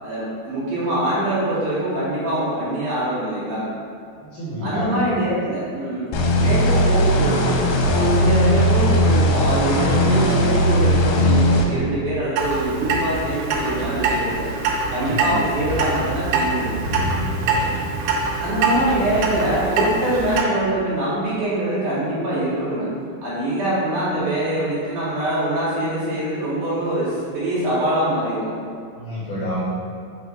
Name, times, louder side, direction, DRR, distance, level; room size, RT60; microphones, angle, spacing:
voice 1, 0.0-3.6 4.6-6.1 6.4-7.6 7.9-14.4 14.9-16.7 18.0-18.1 18.4-22.9 23.2-28.5, right 1 dB, 60° right, -10 dB, 2.4 m, -24 dB
voice 2, 4.3-4.9 14.9-15.3 17.4-17.7 29.0-29.6, equal, 70° left, -8 dB, 2.0 m, -28 dB
sound 1, 6.1-11.6, equal, 85° left, 3.0 m, -18 dB
Clock, 12.4-20.4, right 3 dB, 85° right, 3.1 m, -24 dB
6.9 x 3.1 x 4.8 m, 2.4 s
omnidirectional pair, 5.4 m